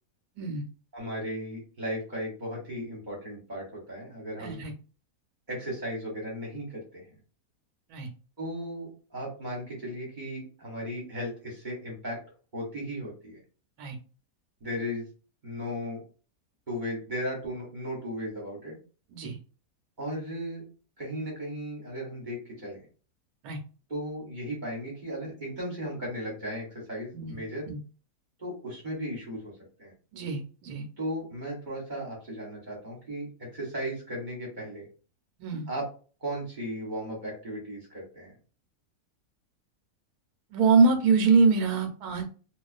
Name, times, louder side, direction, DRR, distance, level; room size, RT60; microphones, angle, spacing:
voice 1, 0.9-4.6 5.5-7.0 8.4-12.2 12.5-13.4 14.6-15.1 15.4-16.0 16.7-18.8 20.0-20.6 21.0-22.8 23.9-27.7 28.4-29.5 29.8-29.9 31.0-34.9 35.7-35.9 36.2-38.3, equal, 35° right, -3 dB, 0.9 m, -36 dB
voice 2, 4.4-4.7 7.9-8.1 13.8-14.0 19.1-19.4 23.4-23.6 27.1-27.4 27.7-27.8 30.1-30.8 35.4-35.7 40.5-42.3, right 4 dB, 80° right, 5 dB, 1.1 m, -24 dB
2.3 x 2.3 x 2.4 m, 0.37 s
omnidirectional pair, 1.6 m